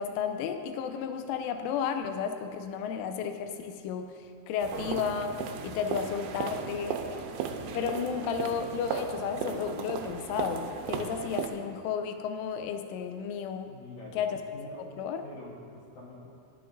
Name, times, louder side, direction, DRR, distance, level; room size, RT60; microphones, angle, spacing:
voice 1, 0.0-4.1 4.5-7.0 7.7-13.8 14.2-14.4 15.0-15.2, left 7 dB, 90° left, 7 dB, 3.1 m, -33 dB
sound 1, 4.6-11.5, right 6 dB, 85° right, 3.3 m, -36 dB
voice 2, 13.7-14.3 14.5-14.8 15.2-16.3, left 1 dB, 75° left, -6 dB, 1.7 m, -46 dB
19.0 x 11.5 x 2.6 m, 2.3 s
omnidirectional pair, 5.4 m